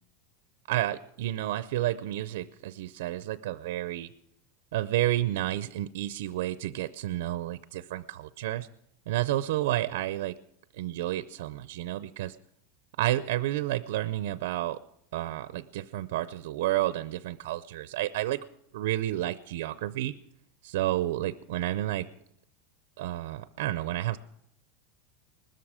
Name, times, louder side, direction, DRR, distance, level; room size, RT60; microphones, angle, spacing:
voice 1, 0.7-4.1 4.7-8.7 9.1-10.4 10.7-12.4 13.0-14.8 15.1-18.4 18.7-20.1 20.6-22.1 23.0-24.2, right 14 dB, 70° right, 15 dB, 0.5 m, -30 dB
20.0 x 13.5 x 4.9 m, 0.75 s
supercardioid pair, 175°, 0 cm